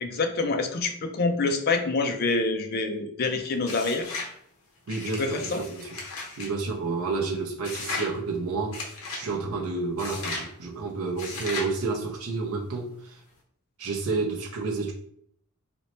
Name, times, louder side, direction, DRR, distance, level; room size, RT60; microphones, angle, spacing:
voice 1, 0.0-4.1 5.2-5.6, left 3 dB, 45° left, 0.4 m, -26 dB
sound 1, 3.6-4.3 4.9-6.5 7.6-8.1 8.7-9.2 10.0-10.5 11.2-11.7, left 3 dB, 75° left, 0.9 m, -35 dB
voice 2, 4.9-5.9 6.4-13.2 13.8-14.9, right 4 dB, 75° right, 0.5 m, -30 dB
2.9 x 2.1 x 4.1 m
head